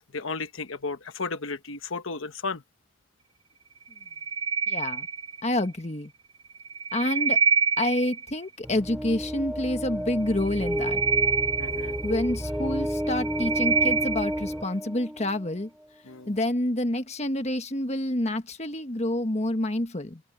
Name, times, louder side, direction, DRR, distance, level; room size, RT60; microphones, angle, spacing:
voice 1, 0.0-2.6 11.6-12.0 16.1-16.3, left 4 dB, 70° left, 1.1 m, -34 dB
sound 1, 3.9-5.6 6.5-8.4 10.4-12.5 12.9-14.5, right 6 dB, 60° right, 2.2 m, -27 dB
voice 2, 4.7-5.1 5.4-6.1 6.9-7.4 7.8-11.0 12.0-15.7 16.3-20.2, left 1 dB, 30° left, 1.4 m, -28 dB
sound 2, 8.6-15.6, equal, 5° right, 5.1 m, -31 dB
open air
head